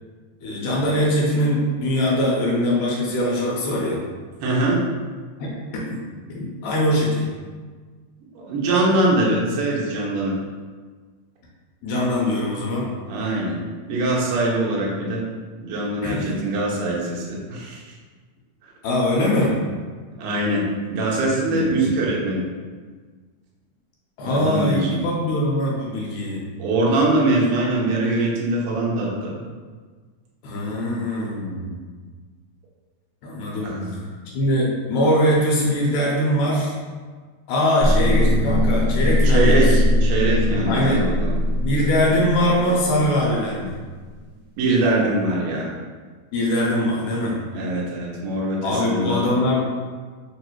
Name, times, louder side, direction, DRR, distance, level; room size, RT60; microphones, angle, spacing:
voice 1, 0.4-4.0 5.4-5.6 5.9-6.0 6.3-7.3 11.8-12.9 16.0-16.3 18.8-19.5 21.5-21.9 24.2-26.4 30.4-31.8 33.2-33.8 34.3-36.8 37.5-39.8 40.6-41.1 41.6-43.7 46.3-47.4 48.6-49.7, left 1 dB, 80° left, -3 dB, 2.1 m, -22 dB
voice 2, 4.4-4.8 8.3-10.4 13.0-13.5 13.9-15.2 15.6-17.8 20.2-22.5 24.2-25.0 26.6-29.4 33.6-34.1 39.2-41.3 44.6-45.7 47.5-49.2, right 2 dB, 70° right, -3 dB, 1.4 m, -22 dB
sound 1, 37.8-43.8, left 1 dB, 45° right, 0.4 m, -20 dB
4.7 x 2.5 x 3.0 m, 1.5 s
omnidirectional pair, 3.4 m